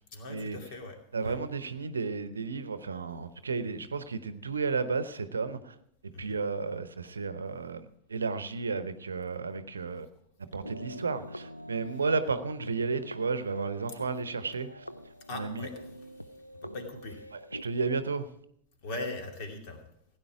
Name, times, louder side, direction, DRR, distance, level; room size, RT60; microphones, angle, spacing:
voice 1, 0.1-1.0 1.2-1.4 6.1-6.4 15.3-15.9 16.6-17.2 18.8-19.8, left 2 dB, 45° left, 3 dB, 2.6 m, -39 dB
voice 2, 1.1-5.8 6.0-10.1 10.4-14.9 15.3-15.7 17.3-18.3, right 4 dB, 75° right, 12 dB, 0.8 m, -33 dB
sound 1, 10.6-17.6, equal, 90° left, 0.5 m, -45 dB
16.5 x 9.4 x 4.8 m, 0.73 s
figure-of-eight pair, 90°, 0 cm